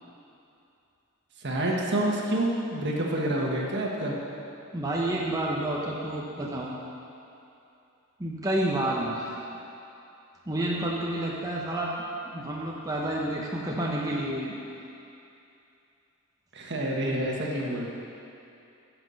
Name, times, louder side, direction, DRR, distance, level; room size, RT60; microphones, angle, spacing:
voice 1, 1.4-4.1 16.5-17.9, right 1 dB, 55° right, -2 dB, 1.5 m, -28 dB
voice 2, 4.7-6.8 8.2-9.4 10.5-11.9 12.2-14.5, right 1 dB, 15° right, -4 dB, 0.8 m, -29 dB
10.5 x 5.9 x 7.0 m, 2.7 s
head